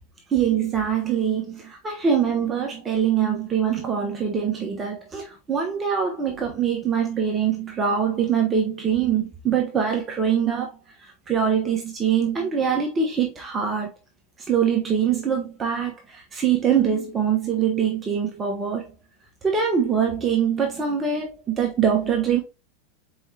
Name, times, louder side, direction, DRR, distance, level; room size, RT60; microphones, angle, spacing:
voice 1, 0.3-10.7 11.3-13.9 14.5-18.9 19.4-22.4, right 7 dB, 25° right, 1.1 m, -23 dB
4.6 x 3.8 x 2.8 m
hypercardioid pair, 95°, 0 cm